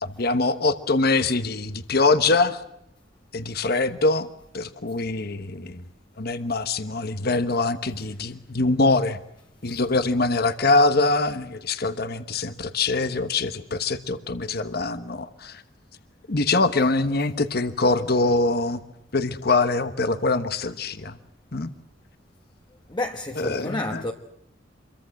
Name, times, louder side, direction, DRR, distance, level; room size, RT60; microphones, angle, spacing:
voice 1, 0.0-2.6 3.3-4.3 4.5-5.8 6.2-9.2 9.6-15.6 16.3-18.8 19.1-21.1 21.5-21.7 23.4-24.0, left 3 dB, 50° left, 1.2 m, -23 dB
voice 2, 22.9-24.1, left 2 dB, 25° left, 1.3 m, -30 dB
27.0 x 23.0 x 7.7 m
head